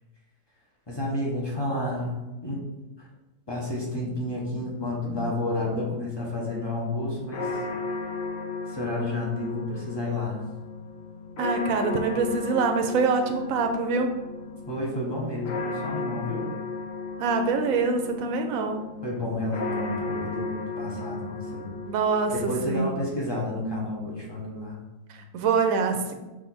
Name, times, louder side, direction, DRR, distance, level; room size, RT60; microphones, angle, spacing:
voice 1, 0.9-2.1 2.4-2.6 3.0-3.1 3.5-7.5 8.7-10.4 14.7-16.5 19.0-21.6 22.3-24.8, left 1 dB, 20° left, -4 dB, 0.8 m, -30 dB
sound 1, 6.2-22.8, left 3 dB, 70° left, 1.0 m, -35 dB
voice 2, 11.4-14.1 17.2-18.8 21.9-23.0 25.3-26.1, right 4 dB, 75° right, 5 dB, 1.0 m, -25 dB
4.9 x 2.5 x 4.0 m, 1.1 s
omnidirectional pair, 1.5 m